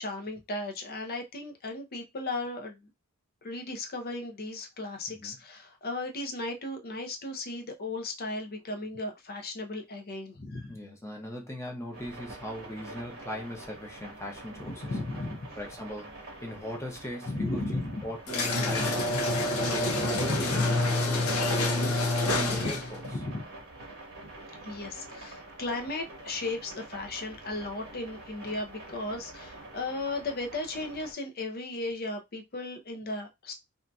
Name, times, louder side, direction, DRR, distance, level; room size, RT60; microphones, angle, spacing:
voice 1, 0.0-2.9 3.4-10.8 14.7-15.5 17.3-18.1 19.8-20.7 22.5-22.7 23.0-23.4 24.6-33.5, left 2 dB, 45° left, 0.7 m, -35 dB
voice 2, 10.7-14.9 15.6-23.0, left 1 dB, 15° left, 0.7 m, -40 dB
sound 1, 11.9-31.1, right 2 dB, 50° right, 0.9 m, -46 dB
sound 2, 18.3-23.0, left 2 dB, 85° left, 0.7 m, -27 dB
2.7 x 2.6 x 2.3 m
head